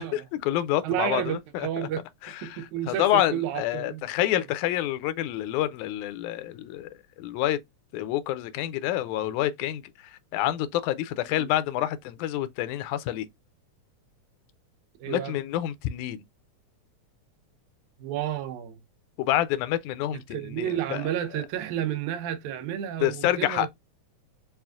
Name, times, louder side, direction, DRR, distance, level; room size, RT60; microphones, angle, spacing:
voice 1, 0.0-1.9 2.2-6.9 7.2-7.6 7.9-13.3 15.1-16.2 19.2-21.1 23.0-23.7, left 13 dB, 85° left, 2.0 m, -28 dB
voice 2, 0.8-2.1 2.4-4.1 11.4-11.5 15.0-15.4 18.0-18.8 20.3-23.7, right 11 dB, 85° right, 2.1 m, -31 dB
5.6 x 2.4 x 2.3 m
omnidirectional pair, 3.4 m